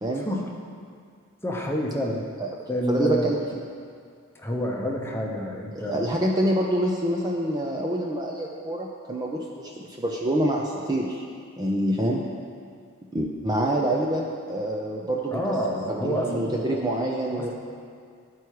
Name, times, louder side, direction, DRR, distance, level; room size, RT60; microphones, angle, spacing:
voice 1, 0.2-0.5 1.4-2.2 2.7-3.5 4.3-6.0 15.3-16.9 17.4-17.5, equal, 10° left, -1 dB, 0.8 m, -28 dB
voice 2, 2.9-3.4 5.8-11.2 11.6-12.2 13.1-15.4 15.9-17.5, right 1 dB, 20° right, -1 dB, 0.5 m, -26 dB
12.5 x 4.7 x 4.6 m, 2.2 s
head